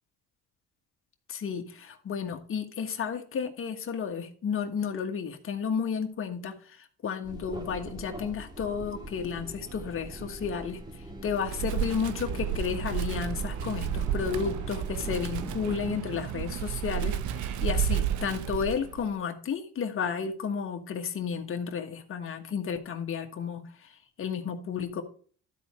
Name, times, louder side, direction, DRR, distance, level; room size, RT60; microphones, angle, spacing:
voice 1, 1.3-25.0, left 6 dB, 45° left, 4 dB, 1.5 m, -32 dB
sound 1, 7.2-16.0, right 2 dB, 15° right, 1.9 m, -42 dB
Wind, 11.4-19.1, right 9 dB, 80° right, 0.8 m, -32 dB
12.5 x 4.3 x 4.8 m, 0.44 s
cardioid pair, 100°, 29 cm